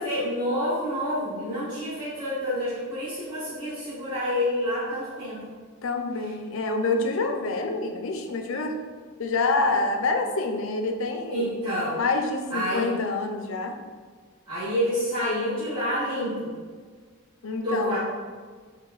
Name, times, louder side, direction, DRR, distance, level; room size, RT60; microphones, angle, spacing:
voice 1, 0.0-5.4 6.2-6.3 11.3-12.0 12.5-13.0 14.5-16.5 17.6-18.0, equal, 20° right, -14 dB, 1.3 m, -28 dB
voice 2, 5.8-8.8 9.2-11.5 12.0-13.7 17.4-18.0, left 3 dB, 65° left, 4 dB, 0.5 m, -27 dB
4.6 x 2.2 x 3.9 m, 1.5 s
head